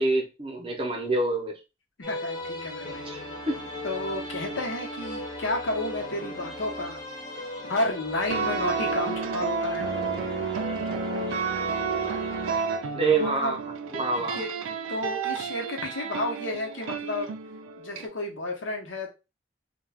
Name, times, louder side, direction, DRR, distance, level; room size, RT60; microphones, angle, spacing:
voice 1, 0.0-1.6 3.0-3.7 12.9-13.6 13.9-14.4, right 3 dB, 30° right, 2 dB, 0.6 m, -27 dB
voice 2, 2.0-3.0 3.8-7.0 7.6-9.9 13.1-13.5 14.2-17.3 17.8-19.1, left 2 dB, 75° left, 1 dB, 0.8 m, -32 dB
sound 1, 2.0-12.6, left 1 dB, 25° left, 0.6 m, -37 dB
sound 2, 8.3-18.1, right 5 dB, 90° right, 0.4 m, -31 dB
2.3 x 2.2 x 3.3 m, 0.28 s
head